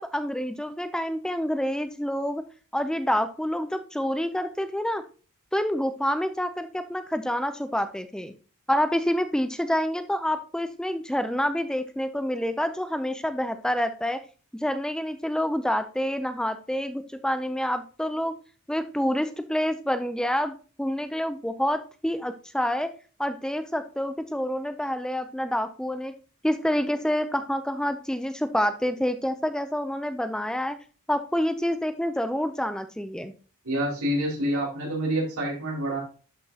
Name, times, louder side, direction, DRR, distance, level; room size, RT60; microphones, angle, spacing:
voice 1, 0.0-2.4 2.7-5.0 5.5-8.3 8.7-14.2 14.5-18.3 18.7-22.9 23.2-26.1 26.4-30.8 31.1-33.3, equal, 5° left, 9 dB, 0.5 m, -27 dB
voice 2, 33.6-36.0, right 1 dB, 80° right, -3 dB, 4.8 m, -27 dB
11.5 x 5.9 x 2.8 m, 0.37 s
head